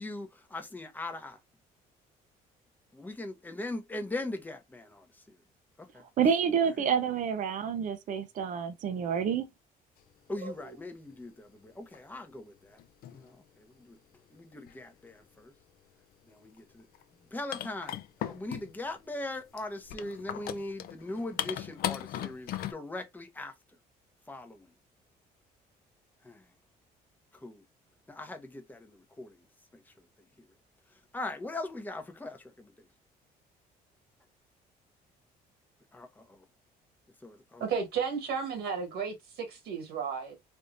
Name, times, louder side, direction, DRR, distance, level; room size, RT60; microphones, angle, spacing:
voice 1, 0.0-1.4 2.9-5.4 5.8-6.0 10.3-12.8 13.1-14.0 14.3-15.5 16.3-16.9 17.3-23.5 24.3-24.7 26.2-26.5 27.3-27.6 28.1-29.5 29.7-30.5 30.9-32.9 35.9-36.5 37.2-37.7, left 2 dB, 10° left, 0.8 m, -40 dB
voice 2, 6.2-9.5 10.4-10.5, right 7 dB, 50° right, 0.6 m, -28 dB
sound 1, 10.4-10.5 11.9-12.0 12.8-13.3 14.5-14.8 16.6-16.7 16.9-17.0 17.5-18.9 19.6-22.7, left 12 dB, 65° left, 0.5 m, -37 dB
voice 3, 37.6-40.3, right 6 dB, 75° right, 1.4 m, -33 dB
3.4 x 2.6 x 2.5 m
cardioid pair, 110°, 17 cm